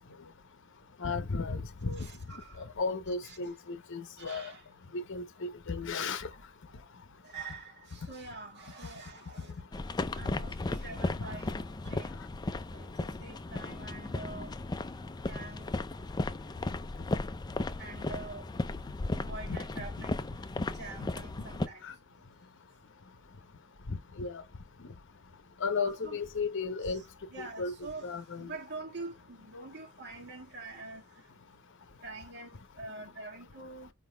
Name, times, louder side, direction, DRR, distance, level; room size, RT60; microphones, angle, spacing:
voice 1, 1.0-2.1 2.6-4.5 4.9-6.3 11.9-12.0 19.5-19.6 21.0-21.1 21.8-21.9 23.9-24.4 25.6-27.0 27.4-27.7 28.0-28.5, left 4 dB, 55° left, 0.8 m, -34 dB
voice 2, 2.0-2.7 3.2-3.4 4.2-4.6 7.2-9.5 10.1-11.6 11.8-12.2 12.7-14.5 15.2-15.7 17.8-18.5 19.1-20.1 20.7-21.8 26.0-26.2 27.3-28.1 28.4-31.3 32.0-33.9, right 3 dB, 50° right, 1.8 m, -45 dB
sound 1, 9.7-21.7, left 2 dB, 20° left, 0.3 m, -36 dB
5.1 x 3.6 x 2.3 m
head